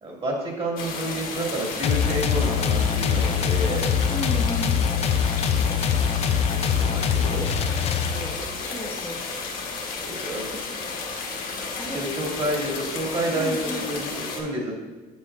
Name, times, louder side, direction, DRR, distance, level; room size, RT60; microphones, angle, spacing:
voice 1, 0.0-3.9 6.5-7.5 10.0-10.6 11.9-14.9, right 1 dB, 35° right, -2 dB, 2.0 m, -29 dB
sound 1, 0.8-14.4, left 4 dB, 60° left, 1.2 m, -33 dB
sound 2, 1.8-8.5, left 7 dB, 40° left, 0.4 m, -23 dB
voice 2, 4.1-4.8 7.6-9.2 10.5-10.7 11.8-12.0 13.3-13.8, left 1 dB, 10° left, -3 dB, 0.8 m, -35 dB
7.2 x 6.7 x 2.4 m, 1.2 s
cardioid pair, 110°, 17 cm